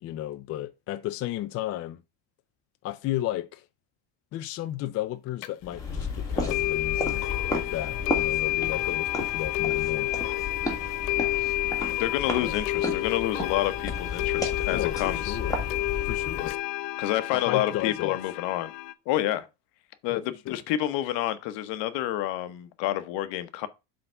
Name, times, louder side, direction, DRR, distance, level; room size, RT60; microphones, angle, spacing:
voice 1, 0.0-2.0 2.8-3.6 4.3-7.2 7.5-10.1 12.4-12.5 14.7-15.6 16.0-16.5 17.3-18.2 20.1-20.6, left 14 dB, 35° left, 0.4 m, -33 dB
sound 1, 5.4-5.5 6.5-18.9, left 17 dB, 90° left, 0.8 m, -30 dB
sound 2, 5.6-16.5, left 3 dB, 5° left, 1.7 m, -33 dB
voice 2, 11.9-15.4 16.4-16.5 17.0-18.7 19.1-19.5 20.0-23.7, left 13 dB, 65° left, 1.0 m, -29 dB
7.8 x 3.9 x 5.5 m
cardioid pair, 140°, 47 cm